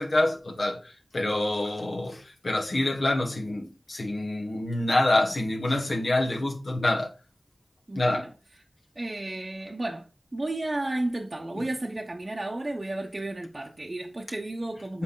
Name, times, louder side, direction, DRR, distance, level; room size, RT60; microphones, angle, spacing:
voice 1, 0.0-7.1 7.9-8.3 14.9-15.0, left 1 dB, 70° left, 1.3 m, -26 dB
voice 2, 7.9-8.3 9.0-10.1 10.3-15.0, right 2 dB, 40° right, 0.8 m, -33 dB
7.4 x 4.3 x 3.8 m
wide cardioid pair, 50°, 0 cm